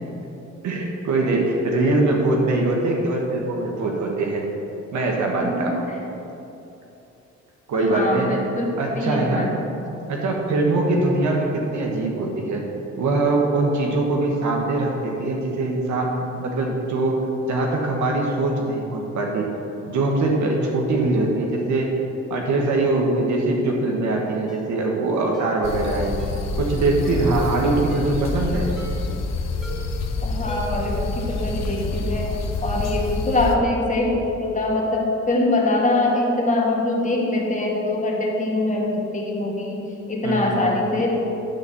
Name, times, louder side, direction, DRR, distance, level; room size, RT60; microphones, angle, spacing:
voice 1, 0.6-4.5 4.9-5.8 7.7-8.3 8.7-9.5 10.1-12.6 13.0-19.5 19.9-22.0 22.3-26.1 26.6-28.7 40.2-40.6, right 2 dB, 70° right, 0 dB, 1.4 m, -22 dB
voice 2, 5.4-5.8 7.9-8.7 8.9-9.6 30.2-39.8 40.1-41.2, left 2 dB, 25° left, -2 dB, 1.9 m, -23 dB
Ringtone, 24.5-24.7 25.3-25.6 26.2-26.4 27.0-27.3 27.9-28.2 28.8-29.1 29.6-30.0 30.5-30.9 31.2-31.3, left 1 dB, ahead, 1.8 m, -39 dB
sound 1, 25.6-33.6, left 3 dB, 60° left, 1.0 m, -27 dB
11.5 x 4.3 x 6.9 m, 2.9 s
cardioid pair, 90°, 30 cm